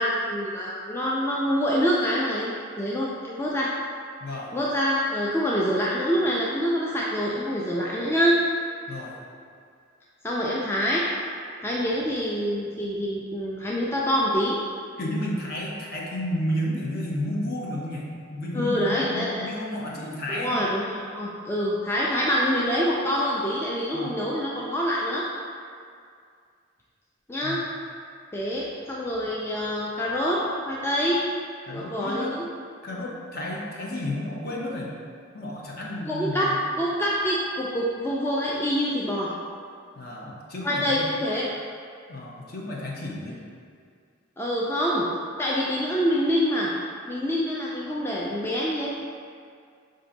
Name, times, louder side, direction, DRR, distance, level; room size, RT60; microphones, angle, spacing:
voice 1, 0.0-3.7 4.5-8.4 10.2-11.0 11.6-14.6 18.5-19.5 20.3-25.2 27.3-27.6 28.3-31.2 31.7-32.4 36.1-36.5 36.8-39.3 40.6-41.4 44.4-45.0 45.4-46.7 47.1-48.9, equal, 10° left, -5 dB, 0.3 m, -26 dB
voice 2, 4.2-4.5 8.9-9.1 15.0-20.5 23.9-24.2 27.4-27.7 31.7-32.3 32.8-34.9 35.3-36.5 40.0-41.1 42.1-43.4, left 1 dB, 50° left, -4 dB, 0.8 m, -32 dB
5.3 x 2.6 x 3.9 m, 2.2 s
head